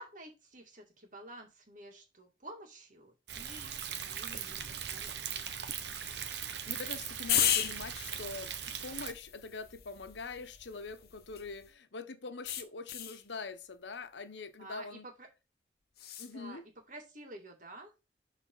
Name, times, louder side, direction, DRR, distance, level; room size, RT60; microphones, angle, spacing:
voice 1, 0.0-4.6 4.9-5.4 14.6-15.3 16.3-16.6 16.9-17.9, right 1 dB, 45° right, 2.6 m, -50 dB
Thunder, 3.3-9.1, right 8 dB, 70° right, 1.1 m, -40 dB
voice 2, 6.7-15.1 16.2-16.6, left 4 dB, 85° left, 0.9 m, -44 dB
sound 1, 7.3-11.7 12.4-13.2 16.0-16.3, left 10 dB, 55° left, 0.9 m, -35 dB
12.0 x 4.1 x 4.0 m
head